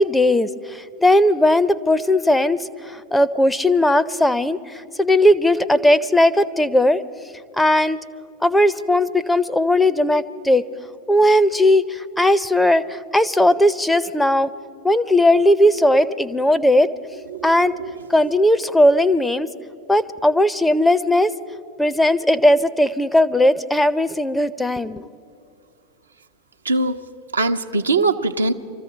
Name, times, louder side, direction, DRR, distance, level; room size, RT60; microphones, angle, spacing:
voice 1, 0.0-7.0 7.6-8.0 8.4-10.7 11.1-14.5 14.8-16.9 17.4-17.7 18.1-19.5 19.9-21.3 21.8-25.1, left 1 dB, 5° left, 13 dB, 0.6 m, -17 dB
voice 2, 17.3-18.3 26.6-27.1 27.3-28.5, right 3 dB, 85° right, 5 dB, 0.7 m, -22 dB
25.0 x 14.5 x 3.9 m, 2.6 s
figure-of-eight pair, 85°, 0 cm